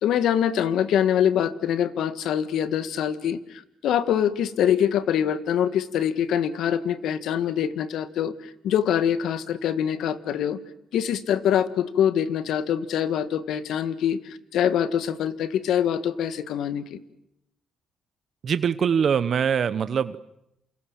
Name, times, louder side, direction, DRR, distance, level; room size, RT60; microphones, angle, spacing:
voice 1, 0.0-3.4 3.8-8.3 8.6-10.6 10.9-17.0, left 9 dB, 80° left, 12 dB, 1.7 m, -24 dB
voice 2, 18.4-20.2, right 7 dB, 55° right, 13 dB, 1.0 m, -23 dB
28.5 x 28.0 x 7.4 m, 0.82 s
cardioid pair, 90°, 0 cm